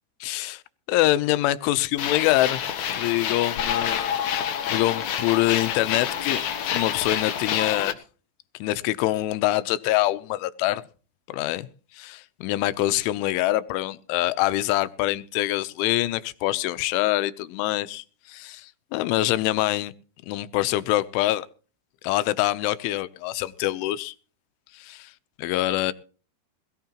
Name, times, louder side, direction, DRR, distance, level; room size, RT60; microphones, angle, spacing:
voice 1, 0.2-0.6 0.9-4.1 4.6-6.4 6.7-8.0 8.6-10.8 11.3-11.7 11.9-19.9 20.3-21.5 22.0-24.1 25.4-25.9, left 16 dB, 90° left, 3.3 m, -25 dB
sound 1, 2.0-7.9, left 9 dB, 70° left, 1.8 m, -28 dB
21.5 x 14.5 x 2.9 m
omnidirectional pair, 5.4 m